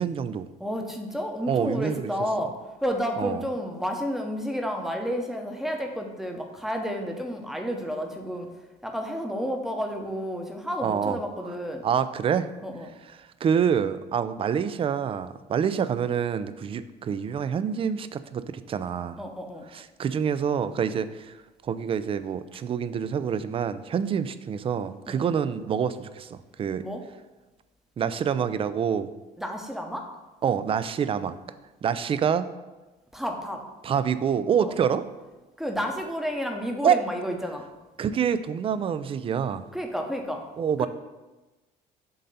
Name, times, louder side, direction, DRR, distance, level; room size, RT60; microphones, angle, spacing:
voice 1, 0.0-0.5 1.5-2.1 3.2-3.4 10.8-11.2 11.8-12.5 13.2-19.2 19.7-21.3 21.6-26.9 28.0-29.1 30.4-31.4 31.8-32.5 33.8-35.0 36.8-37.0 38.0-39.7 40.6-40.9, right 7 dB, 35° right, 13 dB, 0.3 m, -26 dB
voice 2, 0.6-11.8 12.6-12.9 19.2-19.7 25.1-25.3 26.8-27.0 29.4-30.1 33.1-33.6 34.6-34.8 35.6-37.7 39.7-40.4 40.8-40.9, equal, ahead, 3 dB, 0.8 m, -31 dB
7.4 x 2.8 x 5.4 m, 1.1 s
cardioid pair, 110°, 17 cm